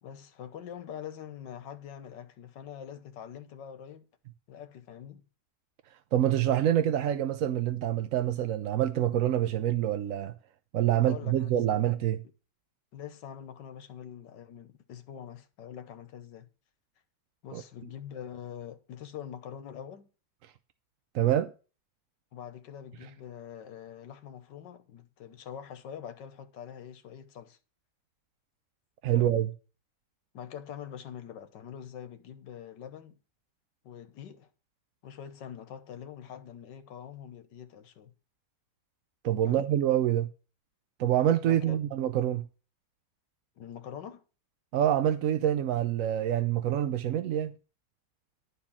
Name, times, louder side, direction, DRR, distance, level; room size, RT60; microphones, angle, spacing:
voice 1, 0.0-4.1 4.5-5.2 11.0-11.8 12.9-16.5 17.4-20.1 22.3-27.6 29.1-29.3 30.3-33.2 33.8-34.5 35.0-38.1 39.5-39.7 41.4-41.8 43.6-44.2, left 9 dB, 80° left, 1.7 m, -44 dB
voice 2, 6.1-10.3 10.7-12.2 17.5-17.6 21.1-21.5 29.0-29.5 39.2-40.3 41.0-42.4 44.7-47.6, right 11 dB, 65° right, 0.8 m, -26 dB
11.0 x 4.4 x 7.2 m
omnidirectional pair, 1.9 m